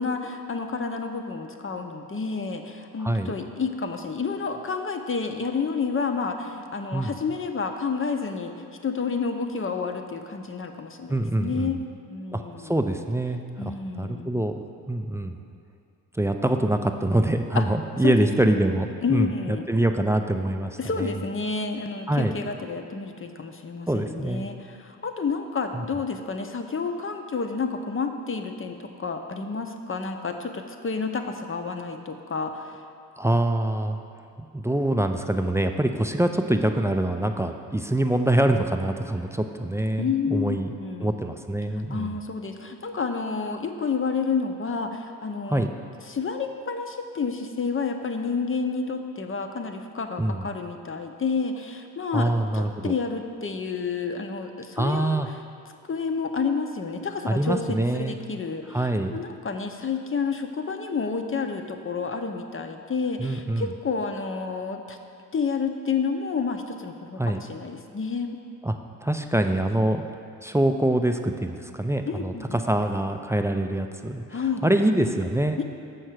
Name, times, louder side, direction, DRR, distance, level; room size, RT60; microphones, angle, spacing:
voice 1, 0.0-8.5 8.8-11.8 12.1-12.7 13.6-14.3 17.5-17.7 18.0-18.3 19.0-19.7 20.8-32.8 40.0-41.1 41.7-45.7 46.1-55.4 55.9-65.0 65.3-68.4 72.1-72.6 74.3-74.7 75.6-75.7, left 5 dB, 30° left, 5 dB, 0.7 m, -30 dB
voice 2, 3.0-3.3 6.9-7.1 11.1-11.8 12.3-14.6 14.9-15.4 16.1-21.1 22.1-22.3 23.9-24.5 25.7-25.9 33.2-34.0 34.5-40.7 41.0-42.1 45.5-45.7 50.2-50.4 52.1-52.9 54.8-55.3 57.3-58.1 58.7-59.2 63.2-63.7 67.2-67.4 68.6-68.8 69.0-70.0 70.4-75.6, right 1 dB, 5° right, 5 dB, 0.4 m, -25 dB
6.3 x 4.6 x 6.2 m, 2.5 s
hypercardioid pair, 40°, 42 cm